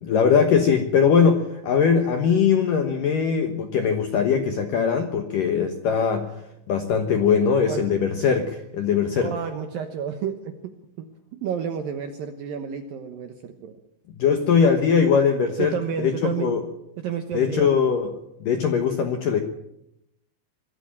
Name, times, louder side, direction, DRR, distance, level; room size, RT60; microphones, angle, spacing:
voice 1, 0.0-6.3 6.7-9.3 14.2-15.7 16.0-16.6 17.3-18.1 18.4-19.4, left 6 dB, 80° left, 6 dB, 1.9 m, -21 dB
voice 2, 9.2-11.1 11.3-13.8 15.6-16.6 17.0-17.7, right 7 dB, 85° right, 7 dB, 2.0 m, -31 dB
23.5 x 13.0 x 8.8 m, 0.82 s
omnidirectional pair, 5.8 m